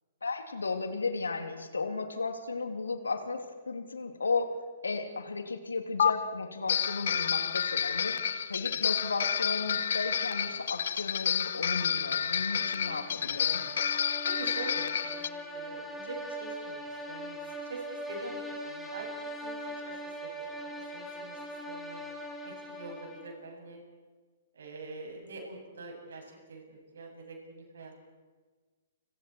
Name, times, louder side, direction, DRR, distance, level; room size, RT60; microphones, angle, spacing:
voice 1, 0.2-4.6 4.8-8.2 8.5-13.7, left 4 dB, 85° left, 6 dB, 3.1 m, -34 dB
sound 1, 6.0-6.1 6.7-15.3, left 8 dB, 65° left, 1.1 m, -30 dB
sound 2, 12.5-23.4, equal, ahead, 5.3 m, -41 dB
voice 2, 14.2-19.1 19.4-19.6 19.8-22.0 22.4-23.8 24.5-28.0, right 3 dB, 70° right, 2 dB, 7.7 m, -45 dB
30.0 x 26.0 x 4.7 m, 1.4 s
figure-of-eight pair, 120°, 0 cm